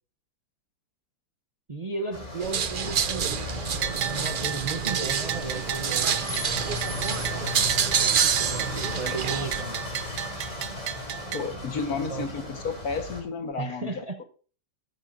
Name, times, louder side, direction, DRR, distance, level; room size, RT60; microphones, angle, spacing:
voice 1, 1.7-6.2 7.9-9.9 11.5-11.6 11.9-12.3 13.6-14.2, right 3 dB, 30° right, 5 dB, 0.8 m, -35 dB
sound 1, 2.1-13.2, left 2 dB, 25° left, 3.7 m, -36 dB
sound 2, 2.4-9.6, right 7 dB, 85° right, 0.4 m, -28 dB
Bell, 3.8-11.4, right 10 dB, 70° right, 1.2 m, -33 dB
voice 2, 11.3-14.0, left 5 dB, 60° left, 6 dB, 1.9 m, -32 dB
14.5 x 13.5 x 2.7 m, 0.40 s
omnidirectional pair, 1.8 m